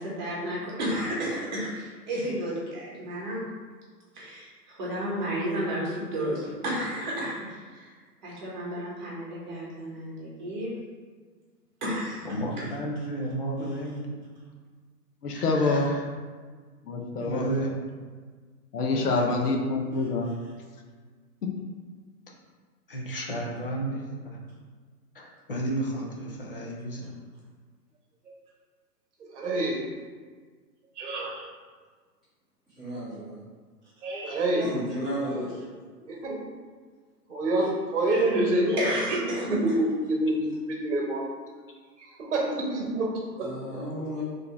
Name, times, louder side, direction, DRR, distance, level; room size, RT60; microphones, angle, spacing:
voice 1, 0.0-3.5 4.1-7.9 8.2-10.8 11.8-12.3 12.6-12.7 38.8-39.6, equal, 30° right, -5 dB, 1.2 m, -32 dB
voice 2, 12.2-14.2 15.3-16.0 17.2-17.7 18.8-19.3 22.9-24.4 25.1-27.2, right 1 dB, 35° left, -1 dB, 0.6 m, -33 dB
voice 3, 15.2-15.9 16.8-17.5 18.7-20.3 21.4-21.5, left 3 dB, 70° left, 2 dB, 1.0 m, -26 dB
voice 4, 29.3-29.8 31.0-31.5 34.0-34.8 36.0-36.4 37.3-39.0 39.5-41.2 42.0-43.5, right 1 dB, 45° right, -1 dB, 1.2 m, -27 dB
voice 5, 32.8-33.4 34.6-35.6 43.4-44.2, right 1 dB, ahead, -18 dB, 1.4 m, -33 dB
4.1 x 3.4 x 3.4 m, 1.5 s
hypercardioid pair, 170°, 49 cm